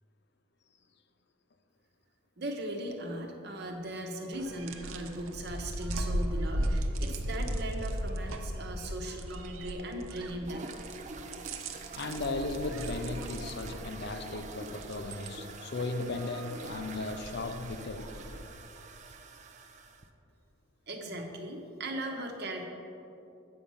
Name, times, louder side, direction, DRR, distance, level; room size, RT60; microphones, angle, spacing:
voice 1, 2.4-10.8 20.9-22.7, right 1 dB, 50° right, 1.0 m, -38 dB
sound 1, 4.3-18.5, right 1 dB, 85° right, 0.7 m, -37 dB
sound 2, 10.4-20.1, right 3 dB, 35° right, 0.5 m, -46 dB
voice 2, 11.9-18.1, left 2 dB, 55° left, 0.6 m, -36 dB
8.8 x 6.3 x 5.5 m
head